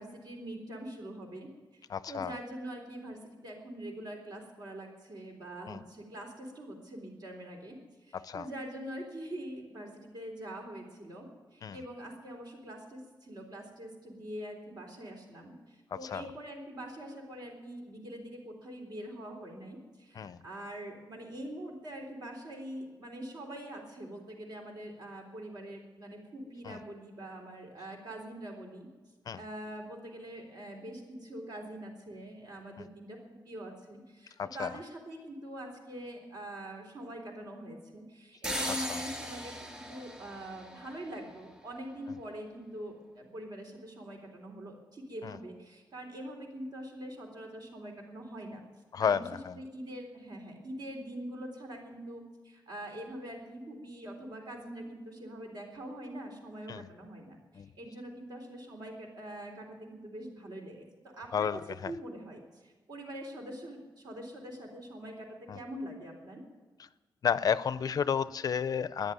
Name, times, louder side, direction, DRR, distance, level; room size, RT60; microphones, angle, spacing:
voice 1, 0.0-1.5 2.1-7.7 8.1-11.3 11.5-28.9 29.3-33.2 33.5-48.6 49.0-49.2 49.5-60.9 61.2-65.3 65.5-66.4, right 1 dB, 60° right, 2 dB, 3.6 m, -44 dB
voice 2, 1.9-2.4 5.7-5.8 8.2-8.5 11.6-11.8 16.1-16.2 20.2-20.4 26.7-26.8 29.3-29.4 32.8-32.9 34.4-34.7 45.2-45.3 48.9-49.5 56.7-56.9 57.6-57.7 61.3-61.6 65.5-65.6 67.2-69.1, left 7 dB, 50° left, 15 dB, 0.5 m, -31 dB
sound 1, 38.4-41.3, equal, 15° right, 2.9 m, -38 dB
13.5 x 10.5 x 9.4 m, 1.3 s
wide cardioid pair, 175°, 8 cm